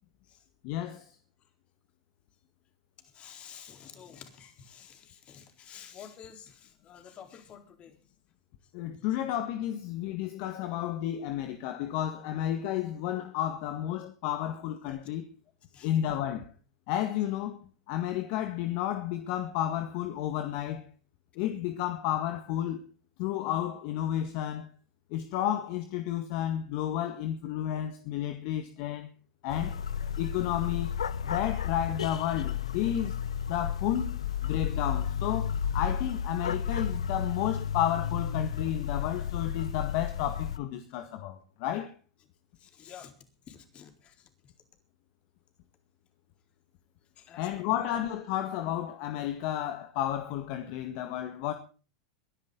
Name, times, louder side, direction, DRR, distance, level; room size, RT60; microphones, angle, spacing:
voice 1, 0.6-1.1 8.7-15.3 15.8-16.5 16.9-17.6 17.9-20.8 21.4-22.8 23.2-24.7 25.1-29.1 29.4-29.8 30.2-30.9 31.2-33.2 33.5-41.9 47.4-51.5, left 11 dB, 55° left, 1.8 m, -32 dB
voice 2, 3.0-8.0 8.9-9.0 15.7-15.9 42.6-43.1 43.5-44.3 47.2-48.0, left 8 dB, 40° left, 4.1 m, -50 dB
sound 1, 29.5-40.6, left 8 dB, 85° left, 0.9 m, -32 dB
22.5 x 11.0 x 3.9 m
hypercardioid pair, 100°, 3 cm